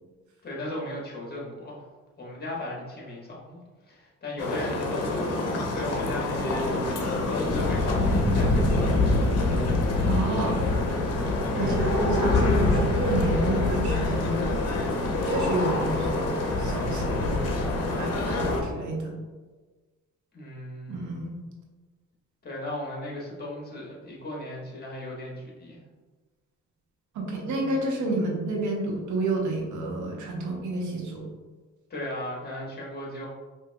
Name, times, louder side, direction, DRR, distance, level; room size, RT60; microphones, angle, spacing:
voice 1, 0.4-1.8 2.2-8.7 11.5-11.9 20.3-21.1 22.4-25.8 31.9-33.3, left 1 dB, 30° left, -4 dB, 1.3 m, -36 dB
sound 1, 4.4-18.6, left 2 dB, 55° left, 0.8 m, -25 dB
voice 2, 10.0-10.6 11.5-14.5 15.2-17.2 18.0-19.2 20.9-21.4 27.1-31.3, right 2 dB, 75° right, 0 dB, 0.9 m, -30 dB
5.1 x 2.6 x 2.3 m, 1.3 s
cardioid pair, 90°, 30 cm